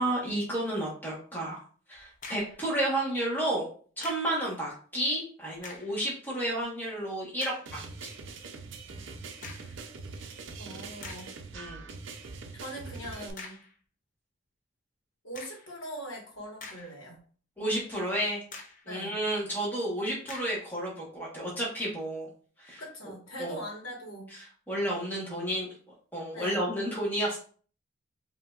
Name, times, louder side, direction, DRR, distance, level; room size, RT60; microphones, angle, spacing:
voice 1, 0.0-1.6 1.9-3.7 4.0-8.1 11.5-11.8 17.6-18.4 18.9-22.3 22.6-22.8 23.4-23.6 24.7-25.7 26.1-27.4, right 1 dB, 10° left, -5 dB, 1.2 m, -31 dB
sound 1, 1.9-2.6 4.0-4.4 5.5-6.0 6.6-6.7 7.4-7.7 9.4-9.8 10.5-10.6 11.0-11.4 13.4-13.8 15.3-15.7 16.3-17.2 17.6-17.7 18.5-18.9 20.3-20.7, left 3 dB, 40° left, 0.6 m, -45 dB
sound 2, 7.7-13.3, right 4 dB, 65° right, 0.5 m, -43 dB
voice 2, 10.6-11.3 12.5-13.6 15.2-17.2 18.8-19.2 22.8-24.3 26.3-26.6, equal, 80° left, -1 dB, 1.4 m, -41 dB
5.1 x 2.7 x 2.4 m, 0.43 s
head